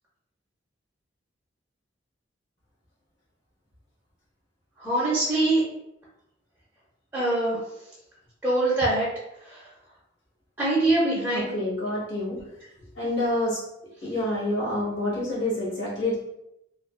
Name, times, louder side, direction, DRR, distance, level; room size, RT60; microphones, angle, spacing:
voice 1, 4.8-5.6 7.1-7.6 8.4-9.1 9.3-9.7 10.6-11.5, right 2 dB, 10° right, -9 dB, 0.5 m, -23 dB
voice 2, 11.3-12.4 13.0-13.6 14.0-16.2, left 1 dB, 60° left, -6 dB, 1.1 m, -27 dB
2.4 x 2.3 x 2.3 m, 0.84 s
head